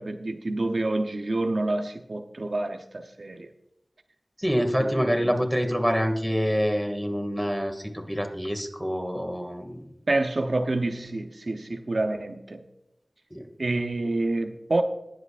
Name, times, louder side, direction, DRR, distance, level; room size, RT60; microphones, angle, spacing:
voice 1, 0.0-3.5 4.8-5.3 10.1-12.6 13.6-14.8, right 2 dB, 80° right, 5 dB, 0.8 m, -28 dB
voice 2, 4.4-9.8 13.3-13.5, equal, 5° left, 4 dB, 2.2 m, -26 dB
20.5 x 8.0 x 2.5 m, 0.90 s
wide cardioid pair, 50°, 0 cm